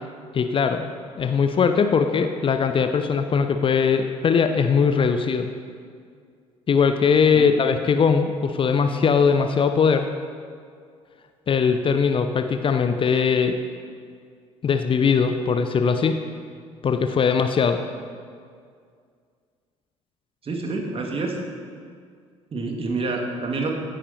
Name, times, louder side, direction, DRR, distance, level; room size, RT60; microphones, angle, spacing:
voice 1, 0.3-0.9 1.2-5.5 6.7-10.1 11.5-13.6 14.6-16.2 16.8-17.8, left 6 dB, 35° left, 7 dB, 0.8 m, -20 dB
voice 2, 20.4-21.4 22.5-23.8, right 3 dB, 35° right, 2 dB, 2.3 m, -27 dB
15.5 x 10.0 x 4.3 m, 2.1 s
figure-of-eight pair, 50°, 16 cm